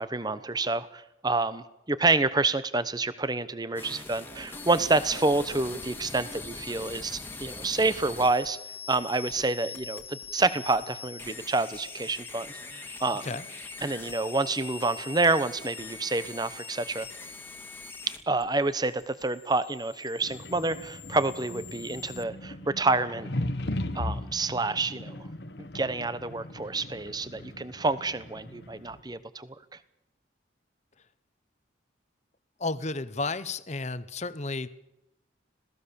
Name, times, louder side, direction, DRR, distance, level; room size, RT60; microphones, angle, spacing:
voice 1, 0.0-8.6 8.9-12.5 13.0-13.3 13.8-17.1 18.3-23.3 23.9-25.3 25.6-29.5, right 3 dB, 20° right, 14 dB, 1.0 m, -28 dB
sound 1, 3.8-22.2, left 4 dB, 10° left, 2.1 m, -42 dB
sound 2, 20.2-29.0, left 1 dB, 60° left, 1.3 m, -38 dB
voice 2, 32.6-34.7, left 3 dB, 35° left, 14 dB, 1.0 m, -32 dB
26.0 x 17.5 x 7.0 m, 0.88 s
head